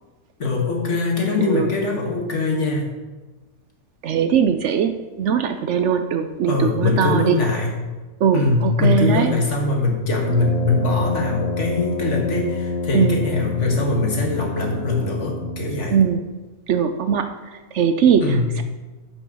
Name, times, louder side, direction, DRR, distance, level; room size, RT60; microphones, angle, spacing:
voice 1, 0.4-2.8 6.4-7.8 8.3-15.9 18.2-18.6, left 3 dB, 55° left, 0 dB, 2.0 m, -22 dB
voice 2, 4.0-4.9 5.2-7.4 8.2-9.3 12.9-13.2 15.9-16.3 16.7-17.3 17.7-18.6, right 7 dB, 65° right, 8 dB, 0.8 m, -20 dB
Brass instrument, 10.2-16.1, left 2 dB, 80° left, 1.6 m, -28 dB
9.5 x 5.4 x 6.2 m, 1.2 s
omnidirectional pair, 1.4 m